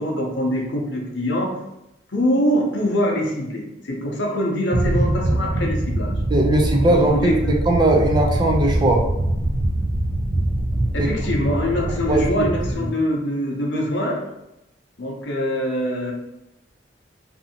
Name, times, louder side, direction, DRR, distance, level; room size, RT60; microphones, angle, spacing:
voice 1, 0.0-1.6 2.1-6.2 6.9-7.6 10.9-14.3 15.0-16.1, equal, 70° left, 0 dB, 0.6 m, -24 dB
sound 1, 4.7-12.7, right 1 dB, 85° right, 0.6 m, -23 dB
voice 2, 6.3-9.0 11.0-11.1 12.1-12.5, right 2 dB, 25° right, 0 dB, 0.3 m, -19 dB
2.7 x 2.6 x 2.7 m, 0.90 s
head